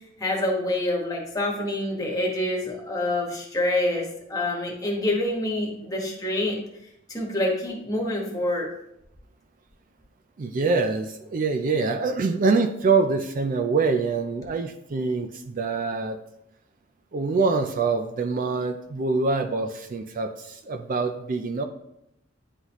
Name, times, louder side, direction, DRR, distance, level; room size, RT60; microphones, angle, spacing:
voice 1, 0.2-6.6 7.1-8.7, left 1 dB, 20° left, -2 dB, 1.3 m, -26 dB
voice 2, 10.4-16.2 17.1-21.6, right 4 dB, 45° right, 7 dB, 0.4 m, -25 dB
9.5 x 4.0 x 3.0 m, 0.80 s
head